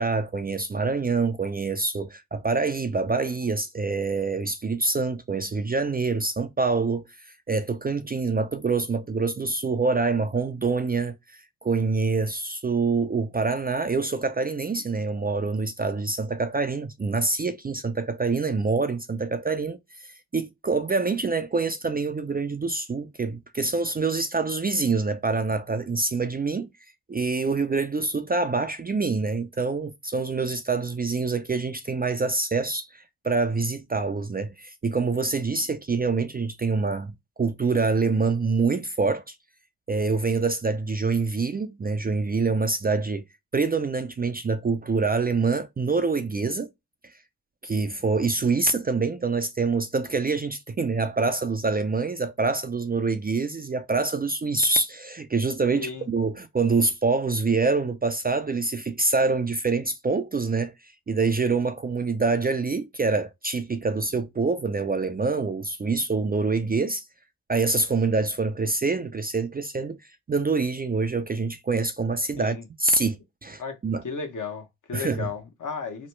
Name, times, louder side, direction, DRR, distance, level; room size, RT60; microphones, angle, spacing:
voice 1, 0.0-19.8 20.0-26.7 27.1-39.3 39.9-43.2 43.5-46.7 47.0-47.1 47.6-67.0 67.5-70.0 70.3-73.2 73.4-74.0 74.9-75.3, right 4 dB, 25° right, 0.5 m, -26 dB
voice 2, 55.7-56.1 72.4-72.6 73.6-73.8 74.0-76.1, left 5 dB, 50° left, 1.1 m, -34 dB
3.0 x 2.0 x 3.1 m
supercardioid pair, 45°, 40 cm